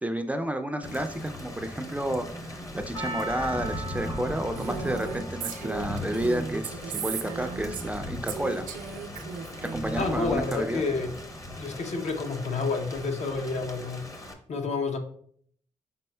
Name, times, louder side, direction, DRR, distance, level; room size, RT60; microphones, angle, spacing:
voice 1, 0.0-8.7 9.6-10.8, right 1 dB, 10° right, 7 dB, 0.4 m, -31 dB
Thunder / Rain, 0.8-14.3, left 1 dB, 25° left, 0.7 m, -39 dB
Percussion, 2.9-7.3 7.9-8.0, right 2 dB, 85° left, 1.7 m, -40 dB
Female speech woman speaking, 4.6-8.0 8.3-10.1, right 6 dB, 85° right, 0.5 m, -36 dB
voice 2, 9.9-11.1 11.6-14.1 14.5-15.0, left 4 dB, 55° left, 4 dB, 0.7 m, -29 dB
5.3 x 4.1 x 2.2 m, 0.62 s
cardioid pair, 65°, 14 cm